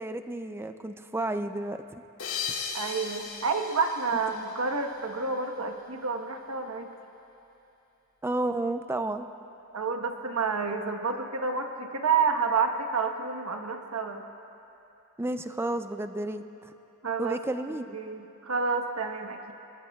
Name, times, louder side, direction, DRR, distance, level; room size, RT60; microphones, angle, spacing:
voice 1, 0.0-2.0 8.2-9.3 15.2-16.4 17.2-18.0, right 2 dB, 10° right, 9 dB, 0.4 m, -31 dB
sound 1, 2.2-5.3, left 6 dB, 80° left, 2.1 m, -37 dB
voice 2, 2.7-6.9 9.7-14.2 17.0-17.4 17.9-19.5, right 5 dB, 85° right, 4 dB, 1.2 m, -29 dB
26.0 x 20.0 x 2.4 m, 2.8 s
head